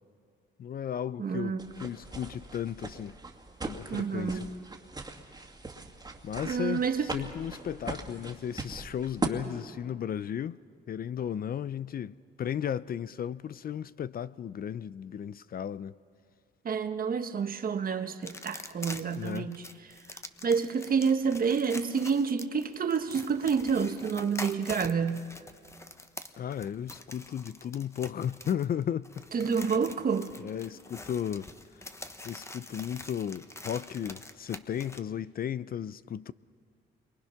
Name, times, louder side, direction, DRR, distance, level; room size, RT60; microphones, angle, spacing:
voice 1, 0.6-3.2 3.7-4.5 6.2-10.6 10.9-16.0 19.2-19.5 26.4-29.3 30.4-31.9 32.2-36.3, left 9 dB, 50° left, 0.5 m, -35 dB
voice 2, 1.2-1.7 3.9-4.5 6.4-7.1 16.6-19.6 20.4-25.3 29.3-30.3, right 6 dB, 45° right, 1.4 m, -29 dB
sound 1, 1.6-9.3, right 3 dB, 20° right, 2.2 m, -39 dB
sound 2, 18.2-35.0, left 2 dB, 15° left, 1.1 m, -45 dB
28.5 x 23.5 x 5.8 m
cardioid pair, 90°, 20 cm